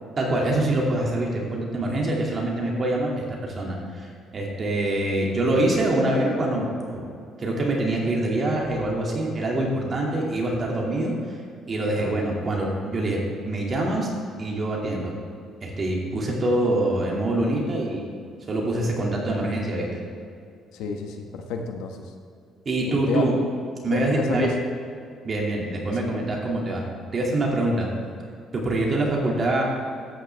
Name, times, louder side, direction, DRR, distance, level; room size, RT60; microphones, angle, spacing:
voice 1, 0.2-7.0 7.4-11.4 11.7-13.2 13.4-14.1 14.4-15.1 15.6-18.1 18.5-19.9 22.7-23.3 23.8-24.5 25.2-26.8 27.1-27.9 28.5-29.6, right 1 dB, 35° right, -2 dB, 2.3 m, -25 dB
voice 2, 20.7-22.0 22.9-23.2 23.8-24.5, left 5 dB, 90° left, 4 dB, 1.1 m, -30 dB
13.5 x 9.3 x 3.4 m, 2.4 s
cardioid pair, 130°, 0 cm